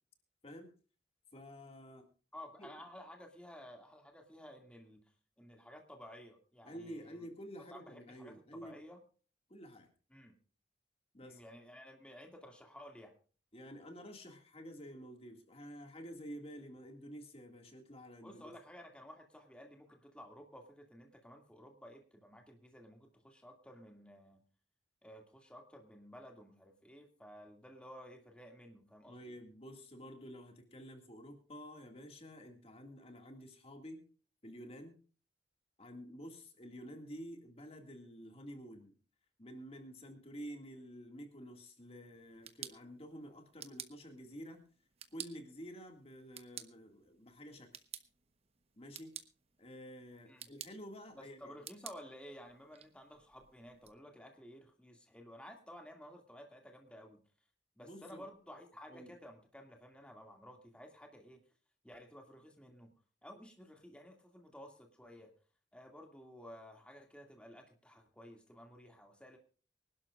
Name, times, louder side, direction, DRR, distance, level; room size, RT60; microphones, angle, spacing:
voice 1, 1.3-2.1 2.6-2.7 6.6-8.8 9.5-9.9 11.1-11.4 13.5-18.5 29.1-34.0 34.4-35.0 35.8-39.0 39.4-44.6 45.1-47.8 48.8-49.2 49.6-51.5 57.8-58.3 58.9-59.1, equal, 35° left, 4 dB, 2.1 m, -50 dB
voice 2, 2.3-5.0 5.4-7.3 7.7-9.0 10.1-10.4 11.2-13.1 18.2-24.4 25.0-29.3 50.3-50.5 51.1-57.2 57.8-61.4 61.8-62.9 63.2-65.3 65.7-69.4, equal, 5° left, 2 dB, 2.2 m, -54 dB
sound 1, 42.2-53.9, right 9 dB, 35° right, 1.1 m, -53 dB
25.0 x 12.0 x 2.5 m, 0.38 s
head